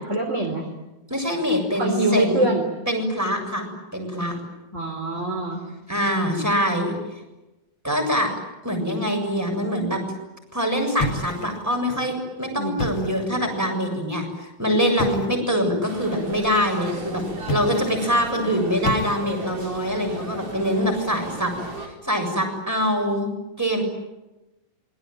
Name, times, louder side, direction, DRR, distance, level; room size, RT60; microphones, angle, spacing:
voice 1, 0.1-0.7 1.7-2.6 4.7-5.6 12.6-12.8, right 2 dB, 20° right, 3 dB, 3.8 m, -24 dB
voice 2, 1.1-2.5 2.9-4.4 5.9-6.9 7.8-8.3 8.6-10.0 10.5-17.2 17.5-21.5 22.0-23.3 23.6-23.8, equal, 5° right, 3 dB, 7.0 m, -24 dB
sound 1, 11.0-11.8 12.6-13.3 15.0-15.4 17.4-18.1 18.8-19.5, left 2 dB, 45° left, 2.3 m, -30 dB
sound 2, 15.8-21.9, right 1 dB, 45° right, 6.0 m, -36 dB
28.0 x 23.0 x 9.3 m, 1.0 s
omnidirectional pair, 3.9 m